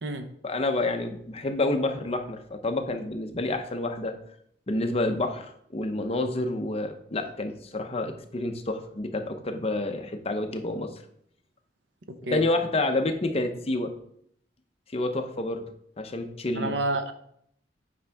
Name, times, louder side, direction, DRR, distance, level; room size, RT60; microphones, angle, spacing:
voice 1, 0.4-4.1 4.7-10.9 12.3-13.9 14.9-15.6 16.0-16.7, left 2 dB, 35° left, 6 dB, 0.7 m, -28 dB
voice 2, 12.1-12.4 16.5-17.1, right 2 dB, 90° right, 8 dB, 0.8 m, -29 dB
8.5 x 5.3 x 3.5 m, 0.69 s
head